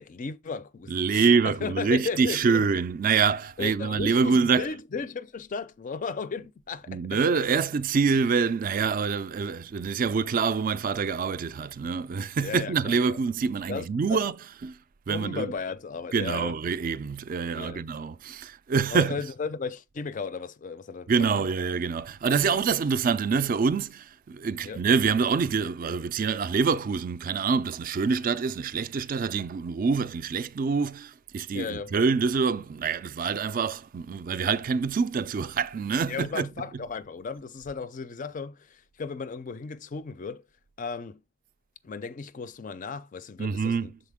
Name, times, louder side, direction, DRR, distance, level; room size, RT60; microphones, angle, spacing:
voice 1, 0.0-2.7 3.6-7.2 12.4-13.2 13.7-14.2 15.1-16.6 17.5-17.9 18.9-21.4 22.4-22.6 24.6-24.8 31.5-31.9 36.1-40.4 40.8-41.2 41.8-43.9, left 5 dB, 40° left, 0.4 m, -35 dB
voice 2, 0.9-4.7 6.9-14.7 15.1-15.5 16.1-19.3 21.1-36.9 43.4-44.0, right 5 dB, 40° right, 0.3 m, -26 dB
6.4 x 4.1 x 3.5 m
head